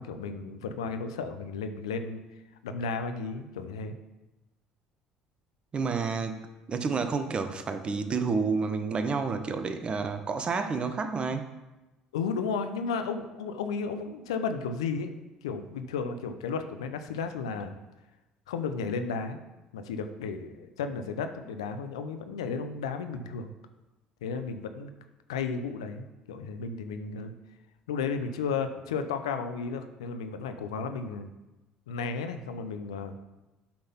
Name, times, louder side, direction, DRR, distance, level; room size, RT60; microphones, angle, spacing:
voice 1, 0.0-2.2 2.6-3.9 12.1-15.1 15.4-17.8 18.5-19.4 19.7-23.5 24.2-24.9 25.3-27.3 27.9-31.3 31.9-33.1, left 5 dB, 85° left, 8 dB, 0.6 m, -33 dB
voice 2, 5.7-6.4 6.7-11.5, right 4 dB, 35° right, 9 dB, 0.9 m, -29 dB
8.6 x 3.9 x 5.5 m, 1.1 s
hypercardioid pair, 65°, 3 cm